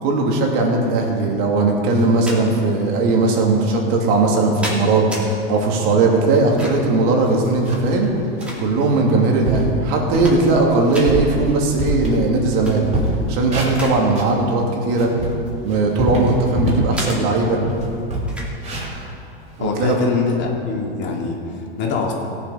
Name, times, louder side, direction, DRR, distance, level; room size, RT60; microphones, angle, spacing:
voice 1, 0.0-8.1 8.6-12.9 13.3-15.1 15.6-17.6 19.6-20.0, right 3 dB, 50° right, 0 dB, 2.5 m, -18 dB
sound 1, 2.0-2.4 3.3-3.4 4.2-5.3 6.3-7.0 7.9-9.0 9.5-9.6 10.0-10.6 10.9-11.1 12.5-12.8 13.2-14.0 14.3-14.5 15.3-16.4 16.9-17.2 18.3-18.5, equal, 5° right, 2.6 m, -33 dB
sound 2, 7.2-8.0 8.4-8.6 9.1-9.2 9.4-9.7 10.1-10.4 10.8-12.5 12.8-14.4 14.8-16.9 17.3-17.4 17.7-19.8, right 1 dB, 20° right, 3.2 m, -25 dB
voice 2, 19.6-21.4 21.8-22.1, left 5 dB, 35° left, -1 dB, 2.3 m, -23 dB
17.0 x 7.4 x 5.2 m, 2.6 s
hypercardioid pair, 120°, 31 cm